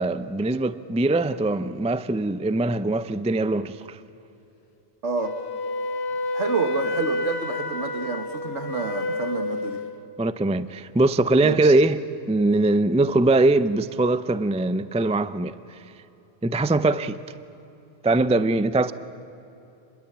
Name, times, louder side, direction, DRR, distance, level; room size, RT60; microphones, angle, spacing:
voice 1, 0.0-4.0 10.2-12.0 12.3-15.6 16.4-17.2 18.0-18.9, right 2 dB, 10° right, 0.3 m, -22 dB
voice 2, 5.0-5.3 6.3-9.8 11.4-11.7, right 5 dB, 75° right, 2.0 m, -28 dB
Wind instrument woodwind instrument, 5.2-9.9, left 2 dB, 60° left, 1.4 m, -29 dB
28.0 x 22.0 x 8.7 m
omnidirectional pair, 1.2 m